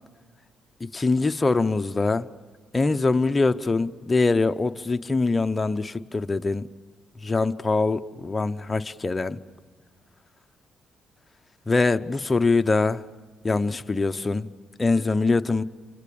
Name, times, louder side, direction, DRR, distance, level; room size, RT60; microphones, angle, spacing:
voice 1, 0.8-2.3 2.7-6.7 7.2-9.4 11.7-13.0 13.4-14.5 14.8-15.6, left 3 dB, 25° left, 0.8 m, -23 dB
29.5 x 26.0 x 7.0 m
cardioid pair, 90°, 0 cm